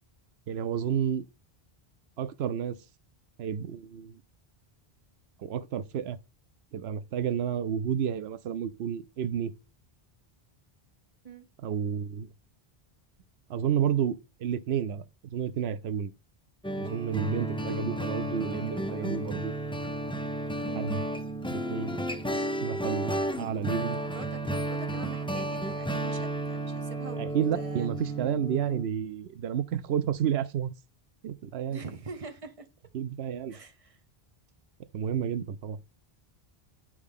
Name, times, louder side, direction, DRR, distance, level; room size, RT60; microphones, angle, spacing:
voice 1, 0.5-1.3 2.2-2.8 3.4-4.2 5.4-6.2 6.7-9.5 11.6-12.3 13.5-15.0 15.3-16.1 16.8-19.5 20.7-21.0 21.5-22.0 22.6-24.0 27.2-30.7 31.2-31.8 32.9-33.5 34.9-35.8, right 8 dB, 90° right, 0.9 m, -31 dB
sound 1, 16.6-28.9, right 1 dB, 10° left, 0.3 m, -32 dB
voice 2, 20.5-20.8 24.0-27.9 31.7-32.7 33.5-34.0, right 5 dB, 35° right, 1.0 m, -44 dB
10.0 x 4.8 x 3.7 m
omnidirectional pair, 1.0 m